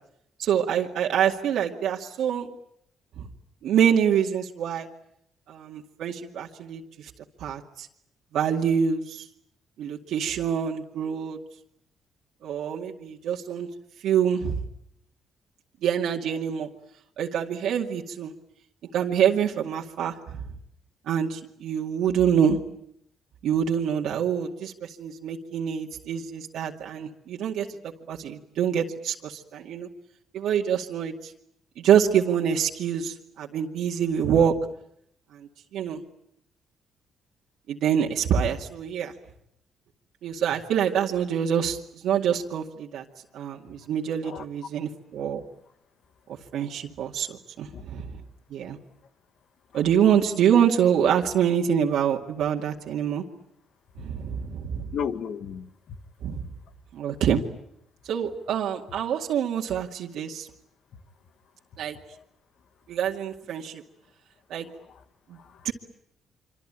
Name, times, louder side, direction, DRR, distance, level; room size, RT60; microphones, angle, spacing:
voice 1, 0.4-2.5 3.2-3.3 3.6-4.9 5.5-7.1 7.4-7.9 8.3-9.3 9.8-11.4 12.4-13.7 14.0-14.6 15.8-16.7 17.2-18.3 18.9-20.4 21.1-22.6 23.4-29.9 30.3-31.3 31.8-34.5 35.3-36.0 37.7-39.1 40.2-43.0 43.3-45.4 46.5-48.2 48.5-48.8 49.7-53.2 54.0-54.9 56.2-56.5 56.9-57.4 58.0-60.5 61.8-62.0 62.9-63.8 64.5-64.7 65.3-65.4 65.6-65.7, right 8 dB, 80° right, 0 dB, 2.2 m, -26 dB
voice 2, 54.9-56.0 62.1-62.2 64.7-65.0 65.3-65.7, left 7 dB, 70° left, 10 dB, 1.9 m, -35 dB
25.5 x 25.5 x 9.0 m, 0.73 s
cardioid pair, 90°, 0 cm